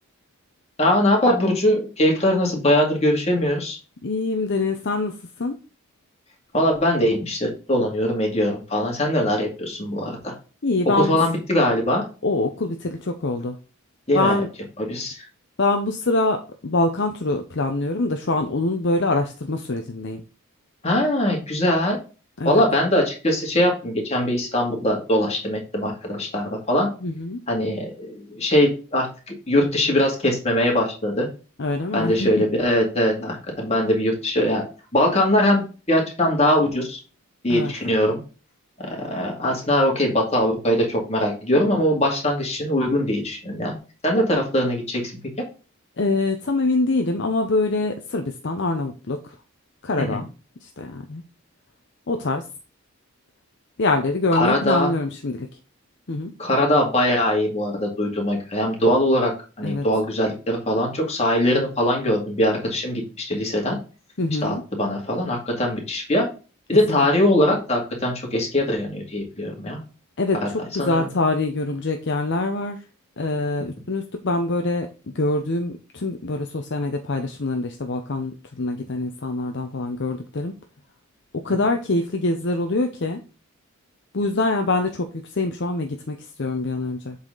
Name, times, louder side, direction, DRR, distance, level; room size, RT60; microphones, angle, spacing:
voice 1, 0.8-3.8 6.5-10.3 10.9-12.0 14.1-14.4 14.8-15.3 20.8-22.0 22.5-26.9 27.5-29.1 29.5-31.3 31.9-34.7 34.9-37.0 37.4-38.2 38.8-43.8 44.0-45.1 50.0-50.2 54.3-54.9 56.4-59.3 59.6-63.8 64.4-66.3 66.7-69.8 70.4-70.5 70.8-71.1, left 1 dB, 30° left, 0 dB, 2.2 m, -21 dB
voice 2, 4.0-5.6 10.6-11.2 12.2-13.6 14.1-14.5 15.6-20.2 22.4-22.6 27.0-27.4 31.6-32.3 37.5-37.7 46.0-49.4 49.8-50.2 50.6-51.2 52.1-52.4 53.8-55.5 56.1-56.3 59.6-59.8 64.2-64.6 66.9-67.0 70.2-72.8 73.2-74.9 75.1-80.5 81.4-83.2 84.1-87.2, left 2 dB, 50° left, 5 dB, 0.7 m, -24 dB
7.7 x 4.2 x 3.8 m, 0.34 s
head